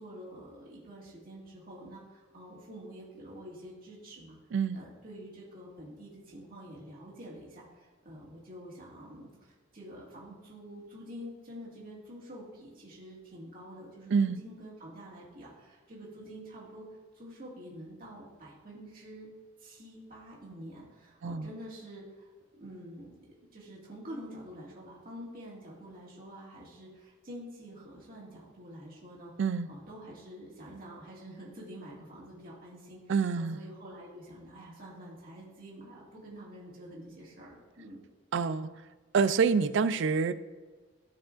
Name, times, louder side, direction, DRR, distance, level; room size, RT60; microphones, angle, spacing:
voice 1, 0.0-4.4 4.7-16.9 17.1-19.3 19.6-23.3 23.5-29.3 29.7-38.0, equal, 45° right, -6 dB, 2.0 m, -47 dB
voice 2, 14.1-14.4 21.2-21.5 29.4-29.7 33.1-33.6 38.3-38.7 39.1-40.3, right 5 dB, 65° right, 14 dB, 0.4 m, -27 dB
14.0 x 4.8 x 2.5 m, 1.3 s
head